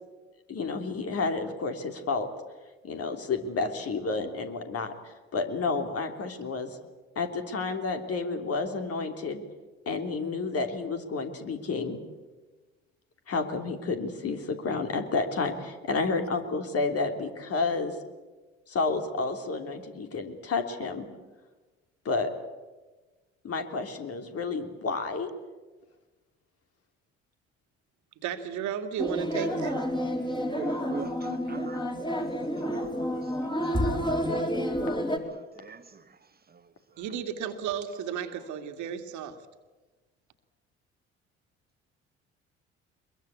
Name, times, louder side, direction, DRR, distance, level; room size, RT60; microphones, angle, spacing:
voice 1, 0.5-2.3 2.8-6.8 7.1-9.4 9.8-12.0 13.3-18.0 18.7-21.1 22.0-22.3 23.4-25.3, left 4 dB, 45° left, 3.2 m, -30 dB
voice 2, 28.2-29.8 37.0-39.4, right 8 dB, 60° right, 2.1 m, -33 dB
sound 1, 29.0-35.2, equal, 15° left, 3.7 m, -29 dB
voice 3, 30.5-31.8 32.1-32.3 35.3-35.8, right 6 dB, 30° right, 1.4 m, -39 dB
23.0 x 22.0 x 8.4 m
figure-of-eight pair, 50°, 33 cm